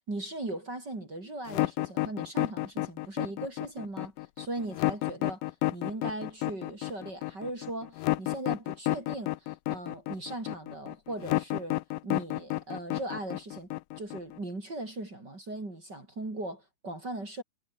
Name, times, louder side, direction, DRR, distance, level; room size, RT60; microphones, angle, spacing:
voice 1, 0.1-5.4 5.7-11.8 12.0-13.7 14.0-17.4, right 2 dB, 30° right, 5.6 m, -38 dB
sound 1, 1.5-14.4, left 18 dB, 75° left, 2.2 m, -31 dB
omnidirectional pair, 4.1 m